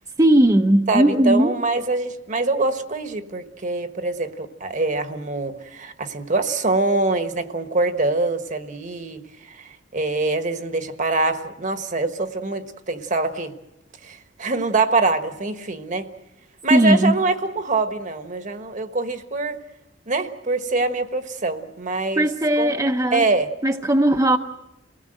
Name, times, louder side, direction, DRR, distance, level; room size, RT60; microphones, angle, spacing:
voice 1, 0.2-1.5 16.7-17.2 22.2-23.3 23.6-24.4, right 1 dB, 20° right, 3 dB, 0.8 m, -18 dB
voice 2, 0.9-9.2 9.5-13.5 14.0-16.1 16.6-19.6 20.1-22.3 22.6-23.5, right 3 dB, 45° right, 9 dB, 1.3 m, -24 dB
28.5 x 18.0 x 7.7 m, 0.97 s
head